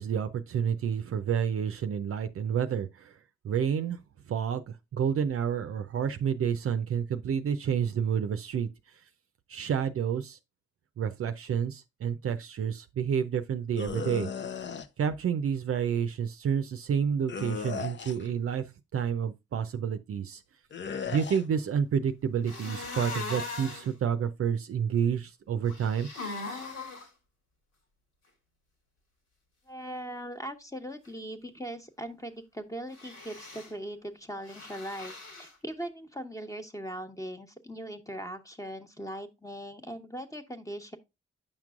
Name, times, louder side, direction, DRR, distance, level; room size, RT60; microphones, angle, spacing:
voice 1, 0.0-3.1 3.4-4.0 4.3-8.7 9.5-10.4 11.0-14.3 15.0-18.7 18.9-20.4 21.1-26.1, right 7 dB, 50° right, 0.6 m, -29 dB
sound 1, 13.8-14.9 17.3-18.3 20.7-21.4, left 6 dB, 40° left, 0.7 m, -36 dB
sound 2, 22.5-23.9 25.7-27.1 32.9-33.7 34.5-35.5, left 3 dB, 75° left, 2.5 m, -39 dB
voice 2, 29.7-35.1 35.4-41.0, equal, 10° left, 1.3 m, -40 dB
8.7 x 5.8 x 2.5 m
hypercardioid pair, 40°, 29 cm